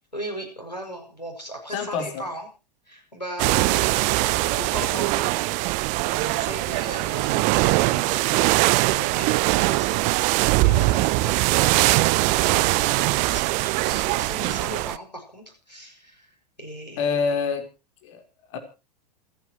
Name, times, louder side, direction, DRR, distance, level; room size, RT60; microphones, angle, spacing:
voice 1, 0.1-2.5 2.9-5.7 6.0-16.3 16.6-17.1, equal, 90° left, 3 dB, 6.5 m, -37 dB
voice 2, 1.7-2.3 17.0-17.7 18.0-18.2 18.5-18.6, left 5 dB, 50° left, 6 dB, 4.3 m, -26 dB
sound 1, 3.4-15.0, right 21 dB, 35° right, 0.7 m, -21 dB
28.0 x 9.4 x 3.1 m, 0.31 s
figure-of-eight pair, 90°, 21 cm